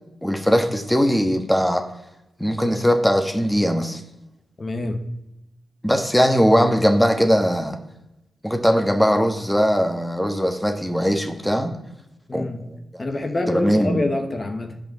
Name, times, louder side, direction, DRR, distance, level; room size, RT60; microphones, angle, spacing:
voice 1, 0.2-1.8 2.4-4.0 5.8-7.8 8.4-11.7 12.3-13.0 13.5-14.0, equal, 5° left, 5 dB, 1.3 m, -20 dB
voice 2, 4.6-5.0 12.3-12.6 13.0-14.8, left 2 dB, 40° left, 5 dB, 1.2 m, -26 dB
9.0 x 5.3 x 7.3 m, 0.87 s
supercardioid pair, 45°, 0 cm